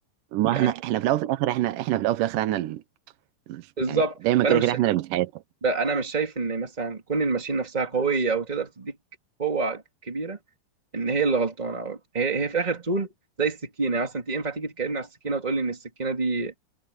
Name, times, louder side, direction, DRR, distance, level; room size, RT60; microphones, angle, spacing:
voice 1, 0.3-2.8 3.5-5.4, right 14 dB, 75° right, 2.4 m, -25 dB
voice 2, 3.8-4.2 4.4-4.8 5.6-8.9 9.4-10.4 10.9-13.1 13.4-16.5, right 4 dB, 15° right, 2.7 m, -27 dB
omnidirectional pair, 4.0 m